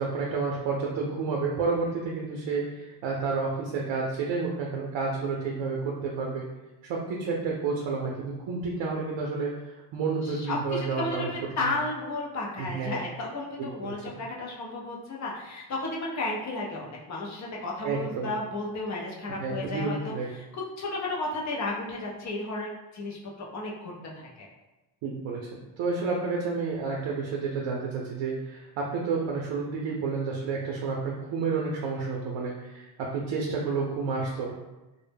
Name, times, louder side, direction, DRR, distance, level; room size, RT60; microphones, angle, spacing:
voice 1, 0.0-6.5 6.8-11.3 11.6-11.7 12.6-13.0 13.6-14.2 17.8-18.3 19.4-20.3 25.0-25.5 25.8-34.6, right 4 dB, 80° right, -2 dB, 0.5 m, -30 dB
voice 2, 10.2-24.5, left 2 dB, 40° left, -2 dB, 0.5 m, -33 dB
2.1 x 2.0 x 3.2 m, 1.1 s
cardioid pair, 150°, 45 cm